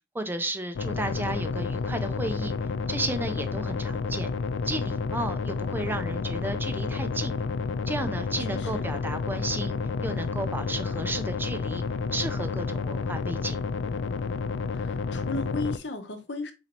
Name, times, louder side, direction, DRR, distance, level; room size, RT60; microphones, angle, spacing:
voice 1, 0.1-2.5 2.9-4.3 4.6-7.3 7.9-11.8 12.1-13.6, right 2 dB, 10° right, 0.4 m, -33 dB
sound 1, 0.7-15.8, left 4 dB, 90° left, 0.4 m, -30 dB
voice 2, 8.5-8.8 14.7-16.5, left 3 dB, 70° left, 0.8 m, -34 dB
4.2 x 3.9 x 2.9 m
head